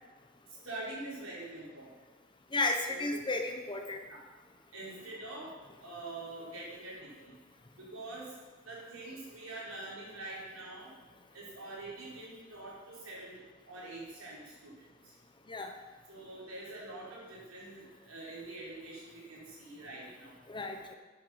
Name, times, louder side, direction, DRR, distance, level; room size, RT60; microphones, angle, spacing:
voice 1, 0.6-1.9 2.9-3.3 4.1-4.2 4.7-7.3 7.8-8.3 8.7-10.9 11.3-13.4 13.6-15.1 16.1-20.4, right 2 dB, 75° right, -5 dB, 4.4 m, -45 dB
voice 2, 2.5-4.0 15.5-15.7 20.5-21.0, left 2 dB, 20° left, 5 dB, 0.8 m, -33 dB
10.5 x 8.0 x 5.6 m, 1.3 s
head